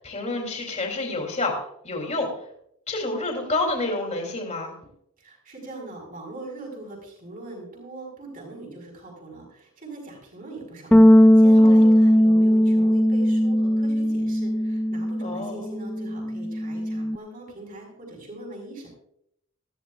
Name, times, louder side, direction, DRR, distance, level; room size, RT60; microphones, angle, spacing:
voice 1, 0.0-2.3 2.9-4.7 11.6-11.9 15.2-15.6, left 2 dB, 30° left, 1 dB, 2.9 m, -29 dB
voice 2, 5.2-18.9, right 2 dB, 40° right, 0 dB, 5.0 m, -41 dB
Bass guitar, 10.9-17.2, equal, 5° left, 0.4 m, -18 dB
19.0 x 14.5 x 2.4 m, 0.73 s
head